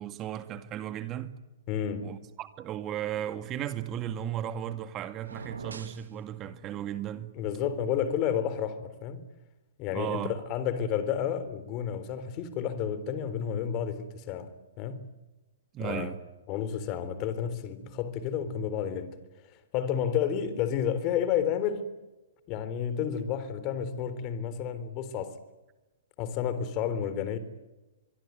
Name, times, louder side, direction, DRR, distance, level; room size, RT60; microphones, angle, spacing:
voice 1, 0.0-1.3 2.0-7.3 9.9-10.3 15.7-16.2, right 11 dB, 25° right, 2.1 m, -35 dB
voice 2, 1.7-2.2 7.3-9.2 9.8-14.5 14.8-15.0 15.8-16.1 16.5-19.2 19.5-21.9 22.5-25.4 26.2-27.4, left 8 dB, 35° left, 3.7 m, -31 dB
sound 1, 5.2-6.1, right 5 dB, 75° right, 3.0 m, -43 dB
24.5 x 24.0 x 9.3 m
figure-of-eight pair, 120°, 0 cm